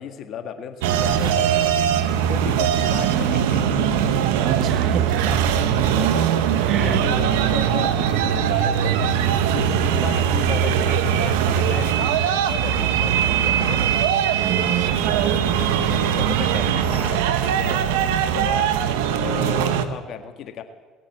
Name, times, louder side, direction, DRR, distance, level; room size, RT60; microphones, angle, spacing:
voice 1, 0.0-3.7 5.8-9.0 9.5-13.9 15.5-18.7 19.2-20.6, left 8 dB, 60° left, 7 dB, 1.9 m, -34 dB
sound 1, 0.8-19.8, right 9 dB, 85° right, 1.0 m, -21 dB
voice 2, 4.4-5.6 6.7-7.0 14.3-15.6, right 9 dB, 65° right, 10 dB, 1.4 m, -28 dB
19.0 x 8.8 x 7.5 m, 1.5 s
supercardioid pair, 75°, 0 cm